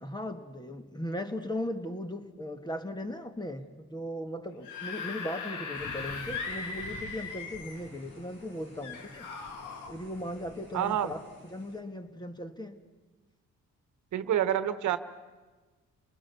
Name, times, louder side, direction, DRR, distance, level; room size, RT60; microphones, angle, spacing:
voice 1, 0.0-9.3 9.9-11.2 11.4-12.8, left 1 dB, 15° left, 8 dB, 1.8 m, -38 dB
Screaming / Screech, 4.5-7.9 8.8-9.9, left 5 dB, 90° left, 2.5 m, -38 dB
sound 1, 5.7-11.8, left 2 dB, 60° left, 5.9 m, -50 dB
voice 2, 10.7-11.1 14.1-15.0, right 10 dB, 75° right, 12 dB, 1.3 m, -27 dB
30.0 x 20.0 x 7.0 m, 1.3 s
cardioid pair, 90°, 30 cm